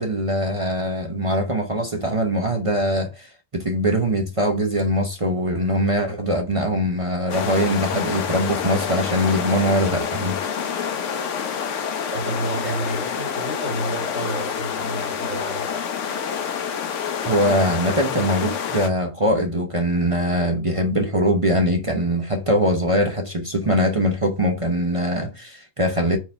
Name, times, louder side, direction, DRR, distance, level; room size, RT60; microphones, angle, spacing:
voice 1, 0.0-10.4 17.2-26.2, equal, 40° right, 0.4 m, -22 dB
sound 1, 7.3-18.9, left 7 dB, 55° left, 0.9 m, -27 dB
voice 2, 12.1-15.7, right 1 dB, 5° right, 2.0 m, -30 dB
4.6 x 4.1 x 5.4 m
omnidirectional pair, 1.8 m